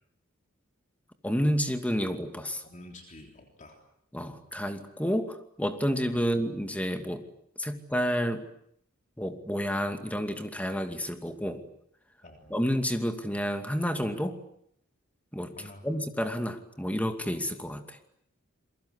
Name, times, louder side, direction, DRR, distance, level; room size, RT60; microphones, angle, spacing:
voice 1, 1.2-2.6 4.1-7.2 7.6-8.4 9.2-11.6 12.5-14.4 15.3-15.5 15.8-18.0, equal, 5° left, 7 dB, 2.5 m, -30 dB
voice 2, 2.6-3.8 6.1-6.3 12.2-12.7 15.6-15.9, left 1 dB, 35° left, 3 dB, 3.5 m, -49 dB
28.0 x 23.0 x 8.3 m, 0.69 s
head